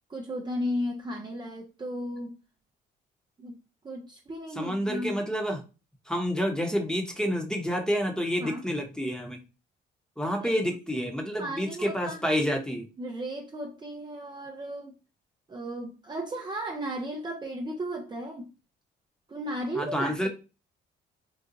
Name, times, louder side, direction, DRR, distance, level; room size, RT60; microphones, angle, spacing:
voice 1, 0.1-2.4 3.4-3.6 3.8-5.2 8.4-8.6 10.2-10.5 11.4-12.4 13.0-14.9 15.5-18.5 19.3-20.3, equal, 20° right, 0.5 m, -35 dB
voice 2, 4.6-5.6 6.1-9.4 10.2-12.9 19.8-20.3, equal, 5° left, 0.9 m, -29 dB
3.9 x 2.4 x 2.7 m
cardioid pair, 90°, 20 cm